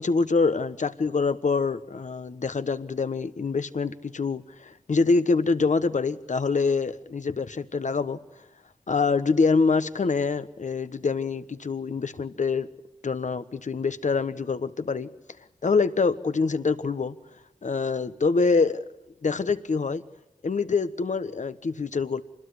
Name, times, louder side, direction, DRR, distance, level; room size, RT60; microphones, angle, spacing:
voice 1, 0.0-8.2 8.9-12.7 13.0-15.1 15.6-17.2 17.6-18.8 19.2-20.0 20.4-22.2, left 4 dB, 70° left, 12 dB, 1.3 m, -25 dB
26.0 x 21.0 x 9.7 m, 0.84 s
cardioid pair, 55°, 13 cm